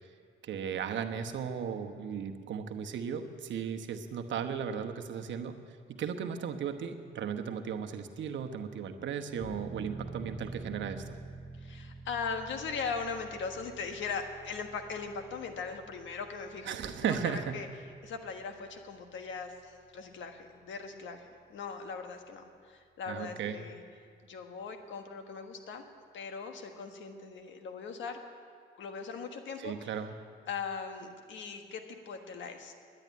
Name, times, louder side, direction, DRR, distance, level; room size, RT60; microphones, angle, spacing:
voice 1, 0.4-5.5 5.9-11.2 16.6-17.6 23.1-23.6 29.6-30.1, right 7 dB, 70° right, 7 dB, 1.0 m, -36 dB
sound 1, 9.4-21.9 22.3-22.4, right 3 dB, 30° left, 2.6 m, -49 dB
voice 2, 11.6-16.7 17.0-17.7 18.0-23.8 24.2-25.8 26.1-28.2 28.8-29.9 30.5-32.7, left 5 dB, 70° left, 5 dB, 1.4 m, -39 dB
11.0 x 9.7 x 9.5 m, 2.2 s
cardioid pair, 90°, 20 cm